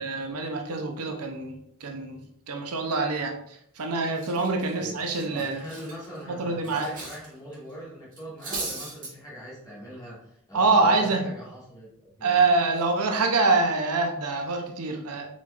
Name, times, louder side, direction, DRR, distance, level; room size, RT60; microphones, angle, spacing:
voice 1, 0.0-2.2 2.5-3.4 3.8-5.6 6.3-6.9 10.5-11.2 12.2-15.3, right 3 dB, 85° right, 3 dB, 0.6 m, -25 dB
Cutlery silverware, 3.5-3.8 4.1-7.3 7.5-7.7 8.1-9.1, right 3 dB, 35° right, 1.5 m, -38 dB
voice 2, 5.3-12.4, equal, 15° left, -8 dB, 1.7 m, -42 dB
4.3 x 4.3 x 2.4 m, 0.70 s
head